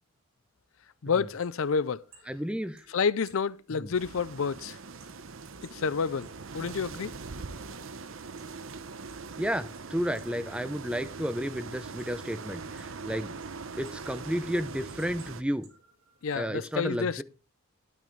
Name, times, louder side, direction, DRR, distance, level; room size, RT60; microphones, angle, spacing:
voice 1, 1.0-2.0 2.9-4.8 5.6-6.3 6.5-7.1 16.2-17.2, left 5 dB, 75° left, 0.5 m, -29 dB
sound 1, 1.0-16.4, right 4 dB, 85° right, 6.6 m, -62 dB
voice 2, 2.3-2.8 3.8-3.9 9.4-13.3 13.8-15.7 16.3-17.2, equal, 5° right, 0.7 m, -32 dB
sound 2, 3.9-15.4, right 4 dB, 70° right, 0.8 m, -42 dB
12.5 x 12.0 x 3.2 m
head